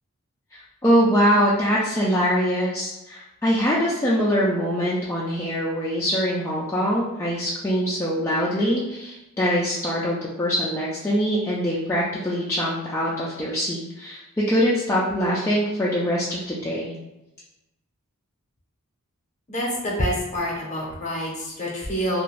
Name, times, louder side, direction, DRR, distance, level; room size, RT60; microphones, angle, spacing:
voice 1, 0.5-16.9, equal, 10° left, -8 dB, 0.3 m, -23 dB
voice 2, 19.5-22.2, equal, 35° left, -3 dB, 0.7 m, -27 dB
2.4 x 2.2 x 3.1 m, 0.95 s
head